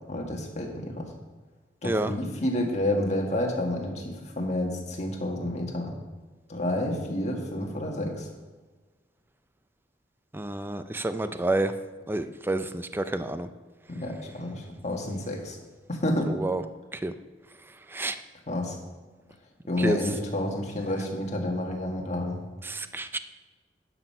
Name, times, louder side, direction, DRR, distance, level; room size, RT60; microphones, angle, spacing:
voice 1, 0.1-1.1 1.8-5.9 6.5-8.3 13.9-15.6 15.9-16.3 18.5-18.7 19.7-22.4, left 1 dB, 40° left, 1 dB, 1.6 m, -29 dB
voice 2, 10.3-11.7 12.1-13.5 16.3-16.6 16.9-17.1 17.9-18.2 19.8-20.0 22.6-23.2, right 2 dB, 10° right, 10 dB, 0.4 m, -29 dB
11.0 x 6.3 x 5.5 m, 1.3 s
head